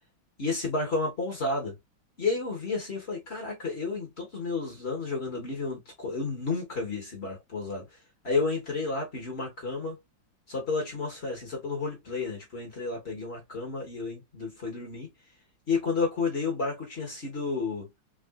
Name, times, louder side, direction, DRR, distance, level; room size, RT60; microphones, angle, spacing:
voice 1, 0.4-1.8 2.2-8.0 8.2-10.0 10.5-15.1 15.7-17.9, left 3 dB, 40° left, 1.1 m, -31 dB
3.7 x 3.5 x 2.4 m
omnidirectional pair, 2.2 m